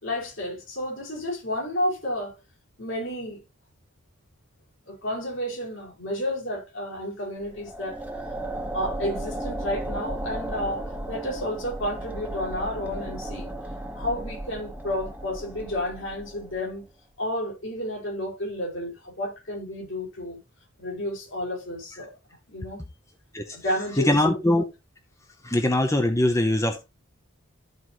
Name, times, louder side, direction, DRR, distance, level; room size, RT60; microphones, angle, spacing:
voice 1, 0.0-2.3 2.8-3.4 4.9-8.0 8.7-13.5 13.9-16.8 17.2-20.4 20.8-22.1 22.5-22.8 23.5-24.1, left 1 dB, 65° left, 5.3 m, -31 dB
sound 1, 7.4-16.7, right 1 dB, 5° right, 1.1 m, -35 dB
voice 2, 24.0-24.6 25.4-26.9, left 1 dB, 15° left, 0.8 m, -22 dB
13.5 x 4.6 x 3.0 m
head